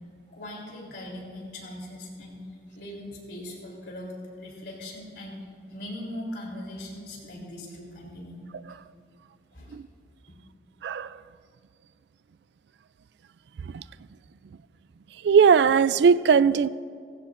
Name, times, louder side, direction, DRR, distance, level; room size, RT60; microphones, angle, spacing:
voice 1, 0.3-2.4 2.7-5.4 5.7-8.4 9.5-9.8, left 1 dB, 70° left, 3.5 m, -40 dB
voice 2, 10.8-11.2 13.7-13.8 15.2-16.7, right 6 dB, 70° right, 0.3 m, -19 dB
17.5 x 15.5 x 2.6 m
head